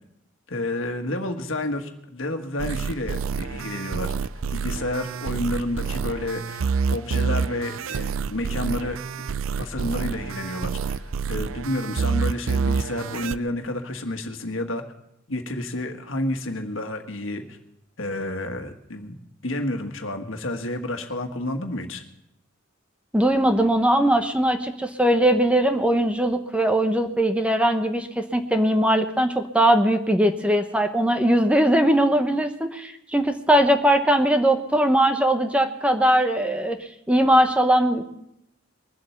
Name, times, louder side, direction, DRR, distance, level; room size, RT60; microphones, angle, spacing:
voice 1, 0.5-9.0 9.6-14.8 15.3-17.6 18.0-19.1 19.4-22.0, left 1 dB, 75° left, 5 dB, 1.7 m, -30 dB
sound 1, 2.6-13.4, right 5 dB, 85° right, 0.5 m, -27 dB
voice 2, 23.1-36.8 37.1-38.0, right 1 dB, 5° right, 7 dB, 0.9 m, -20 dB
21.5 x 7.7 x 7.1 m, 0.81 s
head